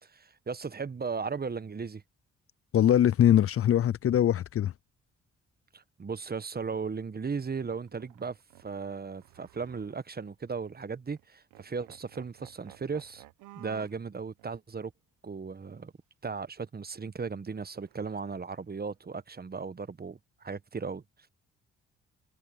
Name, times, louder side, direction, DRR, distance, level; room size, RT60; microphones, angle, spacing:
voice 1, 0.1-2.0 5.7-13.2 13.5-14.9 15.2-15.9 16.2-21.0, right 5 dB, 30° right, 1.3 m, -36 dB
voice 2, 2.7-4.7, left 10 dB, 50° left, 0.5 m, -22 dB
sound 1, 6.5-6.8 7.4-10.3 10.6-10.8 11.1-11.3 11.5-14.0 14.4-14.5 17.7-18.6, right 18 dB, 85° right, 1.3 m, -55 dB
hypercardioid pair, 50°, 30 cm